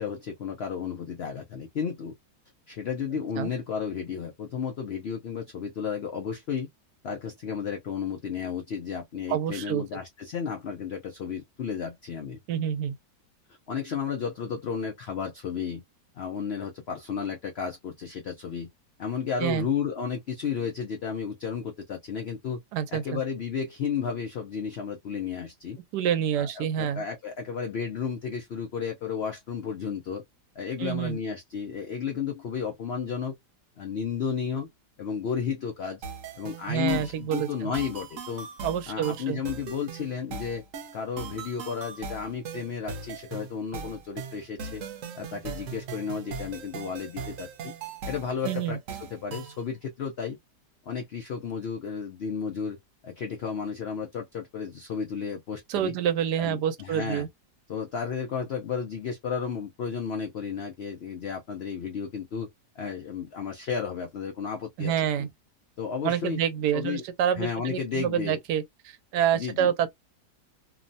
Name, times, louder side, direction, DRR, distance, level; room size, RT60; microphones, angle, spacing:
voice 1, 0.0-2.1 2.7-6.7 7.0-12.4 13.7-15.8 16.1-18.7 19.0-22.6 22.9-25.8 26.4-30.2 30.6-33.3 33.8-34.7 35.0-36.0 36.3-38.5 38.9-40.6 40.9-44.8 45.1-47.7 48.0-50.4 50.9-52.8 53.0-55.9 56.4-57.3 57.7-62.5 62.8-65.3 65.8-66.4 66.7-67.0 67.4-68.4 69.3-69.7, left 6 dB, 90° left, 0.5 m, -33 dB
voice 2, 9.3-9.8 12.5-12.9 19.4-19.7 22.7-23.2 25.9-27.0 30.8-31.2 36.7-37.7 38.6-39.4 48.4-48.8 55.7-57.3 64.8-65.3 66.0-68.6 69.1-69.9, right 9 dB, 85° right, 1.2 m, -27 dB
sound 1, 36.0-49.6, right 5 dB, 60° right, 0.9 m, -39 dB
3.0 x 2.0 x 2.6 m
omnidirectional pair, 1.7 m